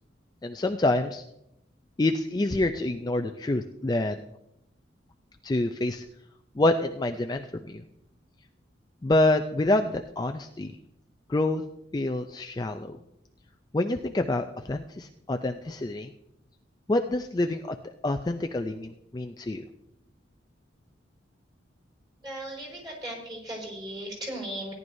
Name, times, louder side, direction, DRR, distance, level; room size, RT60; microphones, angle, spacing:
voice 1, 0.4-1.2 2.0-4.2 5.4-6.1 6.6-7.8 9.0-10.7 11.3-11.6 11.9-13.0 13.7-16.1 16.9-17.8 18.0-19.6, left 2 dB, 20° left, 6 dB, 0.4 m, -27 dB
voice 2, 22.2-24.7, right 1 dB, 25° right, -3 dB, 4.6 m, -37 dB
17.5 x 10.5 x 2.7 m, 0.82 s
head